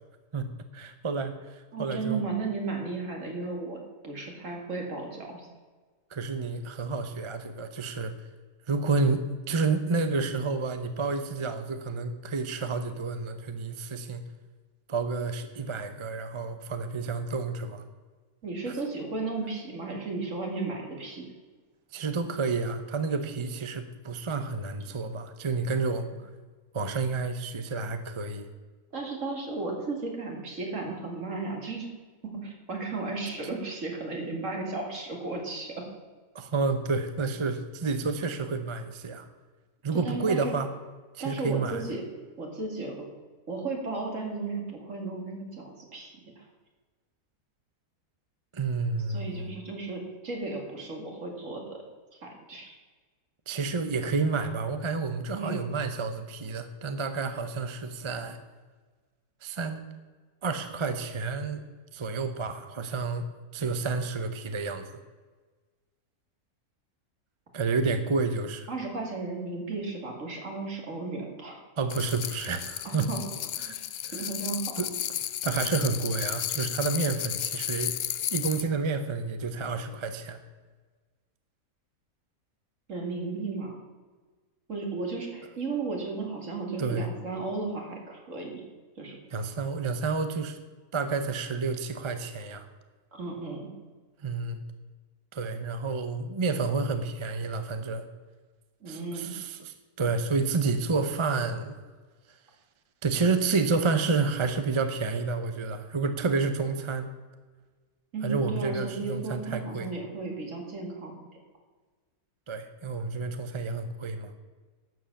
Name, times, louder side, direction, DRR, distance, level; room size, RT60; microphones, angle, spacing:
voice 1, 0.3-2.2 6.1-8.1 8.7-14.2 14.9-17.8 21.9-26.1 26.7-28.5 36.3-39.3 39.8-40.7 41.1-41.8 48.5-49.5 53.5-58.4 59.4-59.8 60.4-61.6 61.9-63.2 63.5-64.9 67.5-68.7 71.8-73.1 73.6-73.7 74.0-74.1 74.8-74.9 75.4-78.0 78.3-80.4 86.8-87.1 89.3-90.6 90.9-92.6 94.2-94.6 95.3-98.0 98.9-101.8 103.0-107.1 108.2-109.9 112.5-114.3, right 4 dB, 30° right, 9 dB, 0.6 m, -30 dB
voice 2, 1.7-5.5 18.4-21.2 28.9-31.9 32.2-35.8 39.9-40.5 41.2-42.0 42.4-43.1 43.5-46.5 49.1-51.8 52.2-52.8 55.3-55.6 68.7-71.6 72.8-73.2 73.5-73.8 74.1-74.8 82.9-83.8 84.7-88.6 89.0-89.2 93.1-93.7 98.8-99.3 108.1-111.3, right 3 dB, 55° right, 1 dB, 2.8 m, -34 dB
sound 1, 71.9-78.7, left 11 dB, 65° left, 0.6 m, -33 dB
12.0 x 7.6 x 7.1 m, 1.4 s
omnidirectional pair, 1.6 m